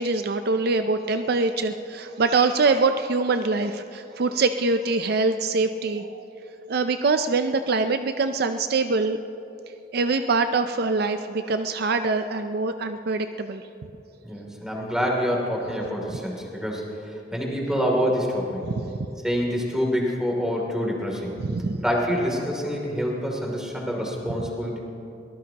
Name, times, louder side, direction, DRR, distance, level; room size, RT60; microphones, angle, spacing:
voice 1, 0.0-6.2 6.7-9.2 9.9-13.6 18.6-18.9 21.4-21.8, right 3 dB, 60° right, 8 dB, 0.5 m, -24 dB
voice 2, 14.2-18.6 19.2-21.3 21.8-24.8, equal, 5° right, -2 dB, 2.8 m, -26 dB
23.5 x 18.5 x 2.9 m, 2.8 s
head